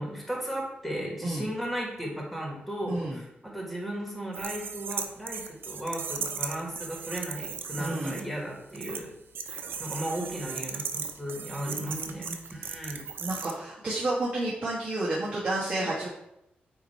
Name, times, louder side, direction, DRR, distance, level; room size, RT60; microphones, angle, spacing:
voice 1, 0.0-9.1 9.5-13.0, right 1 dB, ahead, -2 dB, 2.0 m, -35 dB
voice 2, 2.9-3.2 7.8-8.2 11.7-12.3 13.2-16.1, right 2 dB, 35° right, -7 dB, 1.7 m, -31 dB
sound 1, 4.3-8.2 8.7-9.0 9.3-13.5, right 6 dB, 80° right, 0.7 m, -36 dB
8.7 x 3.0 x 4.5 m, 0.84 s
wide cardioid pair, 120°, 4 cm